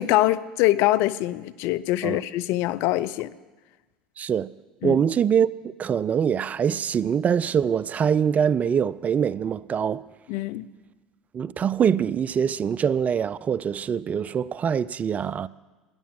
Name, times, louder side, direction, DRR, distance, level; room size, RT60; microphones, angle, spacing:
voice 1, 0.0-3.3 4.8-5.0 10.3-10.7, left 16 dB, 65° left, 0.5 m, -24 dB
voice 2, 4.2-4.5 4.8-10.0 11.3-15.5, right 8 dB, 35° right, 0.4 m, -24 dB
14.5 x 10.5 x 7.6 m
hypercardioid pair, 75°, 4 cm